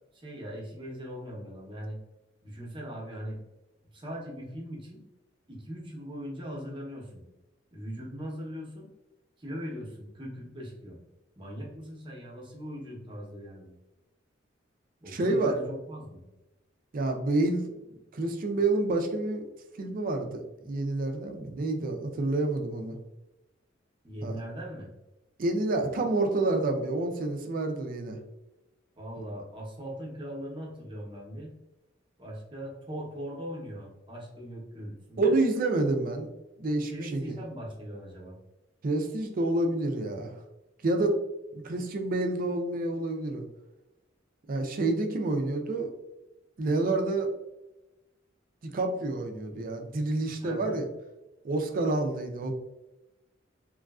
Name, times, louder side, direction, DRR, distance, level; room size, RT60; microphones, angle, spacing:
voice 1, 0.2-2.0 2.4-3.4 3.9-5.0 5.5-7.2 7.7-8.9 9.4-11.0 11.4-13.7 15.0-16.2 24.0-24.9 29.0-31.5 32.2-35.3 36.9-38.4 50.4-50.7, equal, 25° right, -3 dB, 0.8 m, -40 dB
voice 2, 15.1-15.5 16.9-17.7 18.1-19.4 19.7-22.9 24.2-24.3 25.4-28.2 35.2-36.3 36.6-37.4 38.8-40.3 40.8-41.2 41.5-43.4 44.5-45.9 46.6-47.3 48.6-50.9 51.4-52.5, right 2 dB, 45° right, 4 dB, 0.4 m, -28 dB
3.1 x 2.4 x 2.3 m, 1.0 s
head